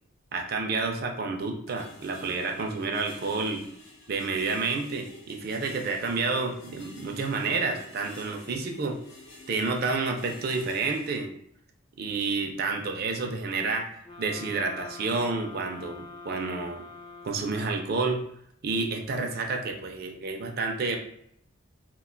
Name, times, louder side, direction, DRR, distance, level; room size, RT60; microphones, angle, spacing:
voice 1, 0.3-3.6 4.1-9.0 9.5-11.3 12.0-13.9 14.2-16.8 17.2-18.2 18.6-21.0, right 4 dB, 45° right, 3 dB, 0.4 m, -29 dB
sound 1, 1.7-11.2, left 2 dB, 75° left, 0.7 m, -49 dB
sound 2, 14.0-17.9, left 3 dB, 25° left, 0.3 m, -45 dB
2.4 x 2.2 x 3.8 m, 0.70 s
head